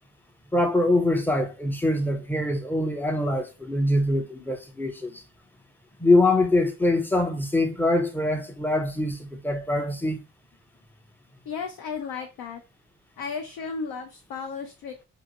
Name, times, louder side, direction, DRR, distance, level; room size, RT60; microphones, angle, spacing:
voice 1, 0.5-5.2 6.0-10.2, left 2 dB, 5° left, 0.5 m, -24 dB
voice 2, 11.5-12.6 13.2-15.0, left 5 dB, 55° left, 0.5 m, -34 dB
2.6 x 2.1 x 2.8 m
supercardioid pair, 40°, 47 cm